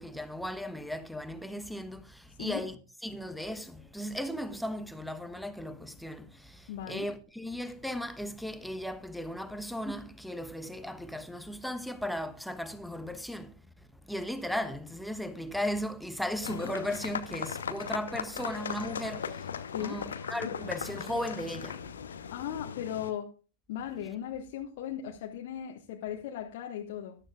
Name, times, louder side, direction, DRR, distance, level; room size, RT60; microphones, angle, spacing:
voice 1, 0.0-13.5 14.0-21.9, left 1 dB, ahead, 1.2 m, -36 dB
voice 2, 6.7-7.1 19.7-20.0 22.3-23.3 23.7-27.2, left 10 dB, 50° left, 1.5 m, -37 dB
sound 1, 16.4-23.1, left 7 dB, 70° left, 1.0 m, -38 dB
14.0 x 12.5 x 2.4 m
figure-of-eight pair, 90°, 0 cm